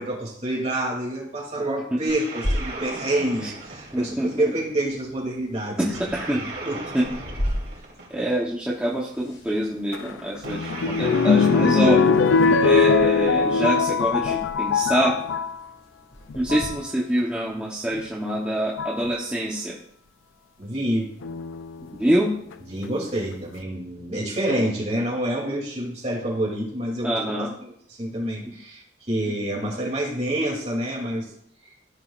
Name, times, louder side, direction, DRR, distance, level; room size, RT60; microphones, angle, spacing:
voice 1, 0.0-5.9 6.6-6.8 20.6-21.1 22.7-31.3, right 1 dB, 35° right, -2 dB, 2.7 m, -27 dB
sound 1, 2.1-4.7 5.9-8.5 10.4-13.0, right 2 dB, 70° right, 3.2 m, -37 dB
sound 2, 2.4-16.7, equal, 65° left, 2.4 m, -37 dB
voice 2, 3.9-4.5 5.8-6.4 6.9-7.1 8.1-12.1 12.6-15.2 16.3-19.8 22.0-22.3 27.0-27.5 28.5-28.6 29.3-29.4 29.6-29.8, right 1 dB, 5° right, -5 dB, 0.9 m, -25 dB
sound 3, 9.9-15.6 16.3-16.7 18.0-18.1 18.8-19.1 21.2-21.9 22.5-22.6 22.8-22.9, left 5 dB, 85° left, 0.4 m, -21 dB
14.5 x 5.7 x 2.5 m, 0.66 s
head